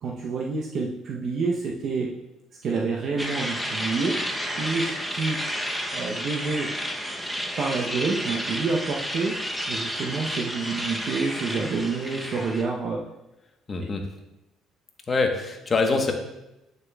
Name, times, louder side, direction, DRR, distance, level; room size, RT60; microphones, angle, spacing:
voice 1, 0.0-2.1 2.6-4.2 4.6-5.4 5.9-6.7 7.6-9.3 9.7-13.0, right 4 dB, 55° right, -2 dB, 0.8 m, -28 dB
sound 1, 3.2-12.6, equal, ahead, 0.8 m, -31 dB
voice 2, 13.7-14.1 15.1-16.1, left 3 dB, 30° left, 3 dB, 1.1 m, -24 dB
9.2 x 6.6 x 2.3 m, 0.94 s
cardioid pair, 100°, 0 cm